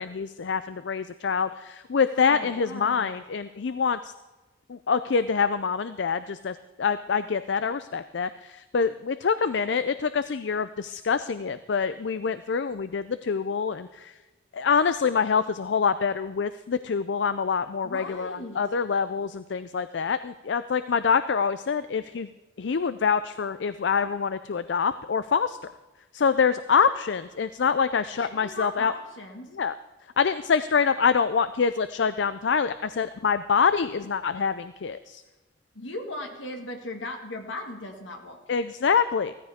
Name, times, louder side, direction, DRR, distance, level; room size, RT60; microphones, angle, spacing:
voice 1, 0.0-4.1 4.7-14.1 14.5-22.3 22.6-25.6 26.1-28.9 29.5-29.7 30.2-35.2 38.5-39.3, left 6 dB, 65° left, 13 dB, 0.5 m, -25 dB
voice 2, 2.2-3.1 17.8-18.6 28.2-29.5 35.7-38.6, left 1 dB, 90° left, 3 dB, 1.8 m, -38 dB
16.0 x 14.5 x 3.6 m, 1.2 s
head